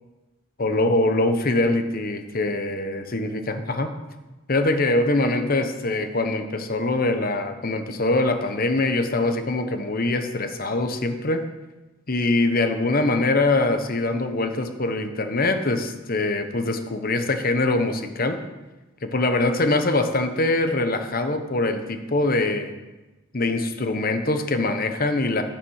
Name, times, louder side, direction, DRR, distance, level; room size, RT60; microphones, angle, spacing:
voice 1, 0.6-3.9 4.5-11.4 12.1-18.4 19.0-22.7 23.3-25.4, left 2 dB, 45° left, 7 dB, 1.1 m, -23 dB
10.0 x 9.0 x 6.5 m, 1.1 s
head